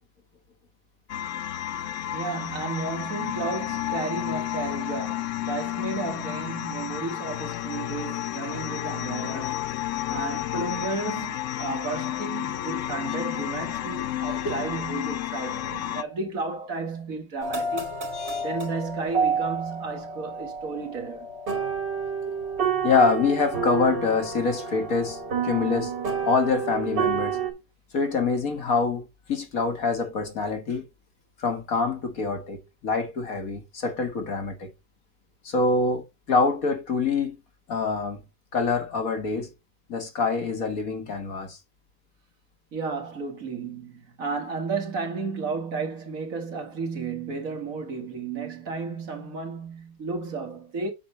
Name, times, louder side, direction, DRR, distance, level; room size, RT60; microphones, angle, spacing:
sound 1, 1.1-16.0, left 13 dB, 80° left, 0.7 m, -31 dB
voice 1, 2.1-9.7 10.1-18.0 18.4-21.3 42.7-50.9, right 4 dB, 50° right, 1.9 m, -33 dB
sound 2, 17.4-27.5, right 5 dB, 75° right, 3.1 m, -29 dB
voice 2, 18.1-18.5 22.8-25.9 26.2-27.4 27.9-29.0 29.3-30.9 31.4-34.7 35.4-37.4 37.7-38.2 38.5-39.5 39.9-41.6, left 4 dB, 55° left, 1.8 m, -25 dB
8.7 x 6.1 x 3.1 m
omnidirectional pair, 1.9 m